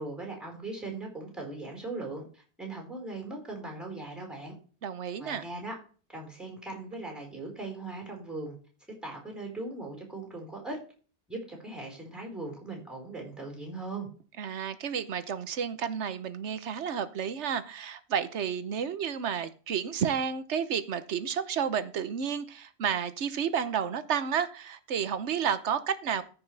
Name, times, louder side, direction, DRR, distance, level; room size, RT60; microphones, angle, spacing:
voice 1, 0.0-4.6 5.2-5.7 6.1-8.6 9.0-10.8 11.3-14.1, right 2 dB, ahead, 1 dB, 4.6 m, -39 dB
voice 2, 4.8-5.4 14.4-26.2, right 7 dB, 85° right, 13 dB, 1.2 m, -31 dB
14.0 x 5.9 x 3.4 m, 0.38 s
omnidirectional pair, 1.1 m